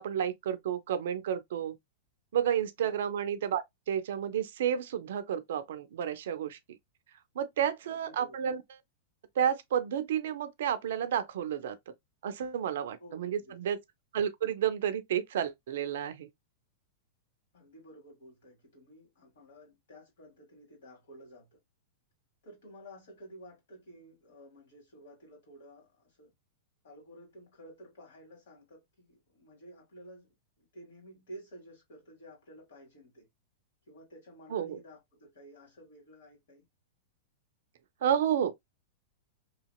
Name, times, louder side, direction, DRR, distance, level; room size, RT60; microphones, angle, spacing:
voice 1, 0.0-1.8 2.3-6.6 7.4-8.6 9.4-11.8 12.2-13.8 14.1-16.3 34.5-34.8 38.0-38.5, right 9 dB, 65° right, 0.4 m, -31 dB
voice 2, 7.8-8.5 13.0-13.6 17.5-21.6 22.4-26.3 26.8-33.3 33.9-36.6, right 1 dB, 65° left, 1.9 m, -52 dB
2.8 x 2.8 x 2.2 m
hypercardioid pair, 100°, 0 cm